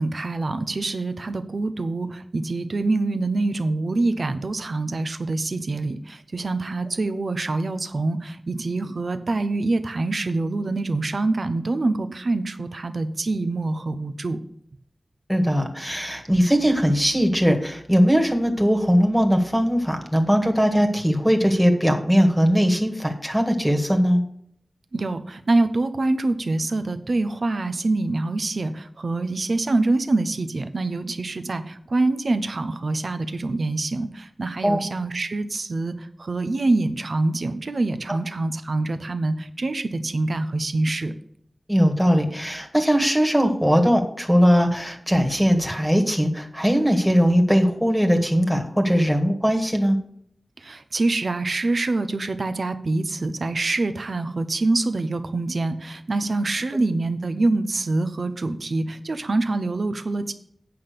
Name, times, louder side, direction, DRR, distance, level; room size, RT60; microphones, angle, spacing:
voice 1, 0.0-14.4 24.9-41.2 50.6-60.3, right 2 dB, 70° right, 10 dB, 0.8 m, -25 dB
voice 2, 15.3-24.2 34.6-34.8 38.1-38.2 41.7-50.0, equal, ahead, 3 dB, 1.7 m, -20 dB
8.6 x 5.8 x 6.9 m, 0.69 s
wide cardioid pair, 65°, 0 cm